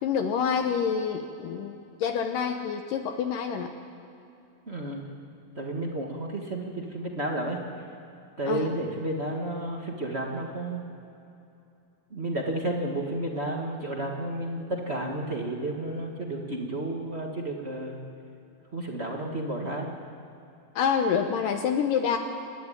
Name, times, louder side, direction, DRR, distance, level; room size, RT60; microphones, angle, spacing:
voice 1, 0.0-1.7 2.0-3.7 8.5-8.7 20.8-22.2, left 7 dB, 70° left, 5 dB, 2.5 m, -27 dB
voice 2, 4.7-5.2 5.5-7.6 8.4-10.8 12.1-18.0 18.7-19.9, right 1 dB, 50° right, 0 dB, 0.7 m, -32 dB
29.5 x 12.5 x 9.1 m, 2.7 s
omnidirectional pair, 4.2 m